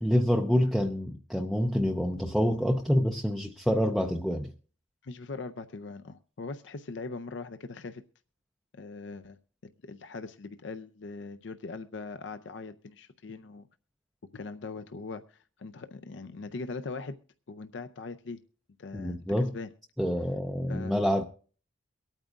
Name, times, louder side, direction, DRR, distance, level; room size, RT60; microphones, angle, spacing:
voice 1, 0.0-4.5 18.9-19.5 20.0-21.2, equal, ahead, 0.4 m, -27 dB
voice 2, 5.0-8.0 8.7-9.4 9.6-13.7 14.3-17.2 17.5-18.4 18.8-19.7 20.7-21.0, left 3 dB, 65° left, 0.5 m, -41 dB
23.5 x 8.9 x 2.4 m
head